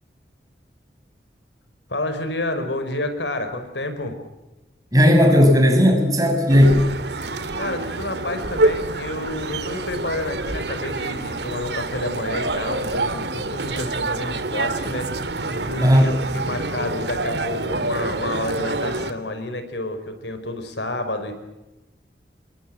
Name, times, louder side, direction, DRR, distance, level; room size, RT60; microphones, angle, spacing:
voice 1, 1.9-4.2 7.6-15.1 15.5-21.3, left 2 dB, 90° left, 8 dB, 5.0 m, -29 dB
voice 2, 4.9-6.8 15.8-16.1, equal, 20° right, 4 dB, 6.3 m, -15 dB
sound 1, 6.5-19.1, right 2 dB, 75° right, 2.1 m, -27 dB
28.5 x 22.5 x 7.8 m, 1.0 s
head